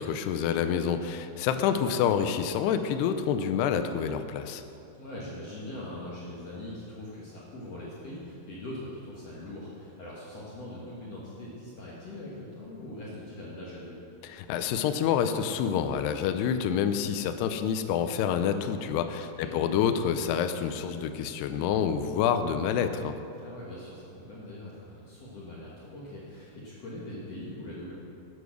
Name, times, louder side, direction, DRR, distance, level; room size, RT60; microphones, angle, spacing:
voice 1, 0.0-4.6 14.2-23.2, left 8 dB, 85° left, 8 dB, 2.6 m, -27 dB
voice 2, 1.3-1.6 5.0-14.0 19.1-19.6 23.3-27.9, left 1 dB, 55° left, -6 dB, 1.9 m, -42 dB
12.0 x 8.2 x 6.2 m, 2.7 s
omnidirectional pair, 4.8 m